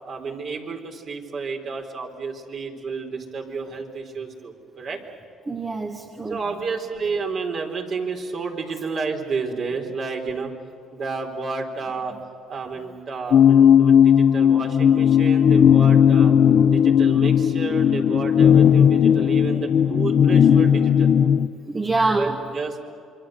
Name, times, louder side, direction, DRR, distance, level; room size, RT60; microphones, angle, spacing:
voice 1, 0.1-5.0 6.3-10.5 10.9-12.2 12.5-16.3 16.7-21.1 22.1-22.8, right 4 dB, 50° right, 2 dB, 4.3 m, -31 dB
voice 2, 5.5-6.5 18.6-18.9 20.2-20.7 21.7-22.4, right 3 dB, 25° right, 3 dB, 1.8 m, -26 dB
sound 1, 13.3-21.5, left 8 dB, 55° left, 0.7 m, -16 dB
27.0 x 24.0 x 7.9 m, 2.4 s
cardioid pair, 95°, 0 cm